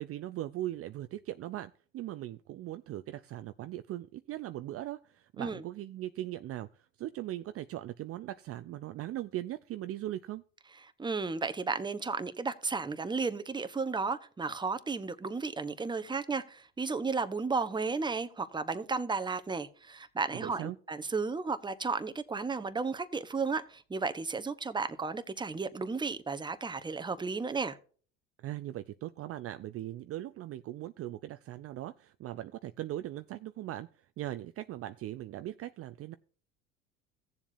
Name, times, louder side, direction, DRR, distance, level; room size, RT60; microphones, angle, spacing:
voice 1, 0.0-10.4 20.3-20.8 28.4-36.2, right 14 dB, 40° right, 0.5 m, -39 dB
voice 2, 11.0-27.8, right 4 dB, 10° right, 0.9 m, -33 dB
16.5 x 7.2 x 2.6 m
hypercardioid pair, 85°, 36 cm